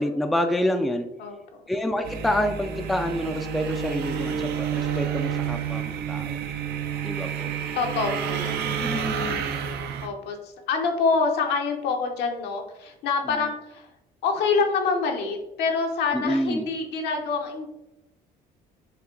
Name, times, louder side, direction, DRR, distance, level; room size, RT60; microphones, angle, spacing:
voice 1, 0.0-1.1 1.7-6.4 7.0-7.5 8.6-9.4 13.2-13.5 16.1-16.7, left 1 dB, ahead, 6 dB, 0.3 m, -28 dB
sound 1, 2.0-10.1, right 8 dB, 70° right, 0.6 m, -29 dB
voice 2, 7.7-9.3 10.0-13.9 14.2-17.7, left 4 dB, 80° left, 3 dB, 0.9 m, -26 dB
5.7 x 2.2 x 3.7 m, 0.92 s
cardioid pair, 110°, 17 cm